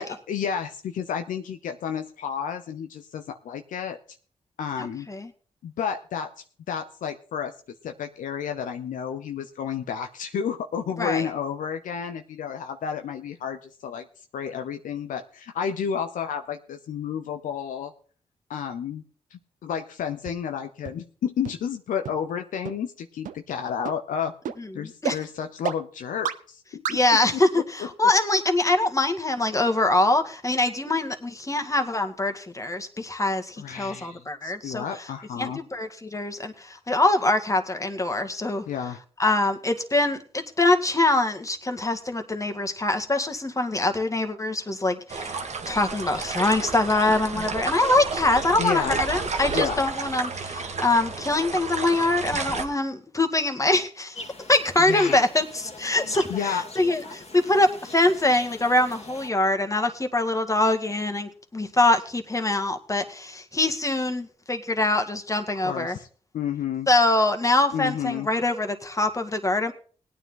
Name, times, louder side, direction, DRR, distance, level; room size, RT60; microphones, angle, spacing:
voice 1, 0.0-4.0 4.6-5.1 5.6-7.5 7.8-14.1 14.3-17.9 18.5-19.0 19.3-24.3 24.7-26.8 27.3-27.9 33.6-35.6 38.7-39.0 48.6-49.0 49.5-49.8 54.8-55.2 56.3-56.6 65.6-66.1 66.3-66.9 67.7-68.3, left 7 dB, 80° left, 6 dB, 0.8 m, -31 dB
voice 2, 4.8-5.3 11.0-11.2 24.6-25.2 26.9-34.8 35.4-38.6 39.2-45.4 45.7-54.2 54.5-66.0 66.9-69.7, left 2 dB, 25° left, 6 dB, 1.9 m, -24 dB
sound 1, 20.2-20.3 20.8-20.9 21.4-21.5 22.0-22.1 22.6-22.7 23.2-23.3 23.8-23.9 24.4-24.5 25.0-25.1 25.6-25.7 26.2-26.3 26.8-26.9, right 9 dB, 75° right, 0.7 m, -29 dB
sound 2, 45.1-52.6, right 4 dB, 55° right, 1.6 m, -31 dB
sound 3, 54.1-59.3, left 2 dB, 55° left, 2.1 m, -42 dB
17.0 x 9.6 x 3.9 m, 0.43 s
supercardioid pair, 45°, 14 cm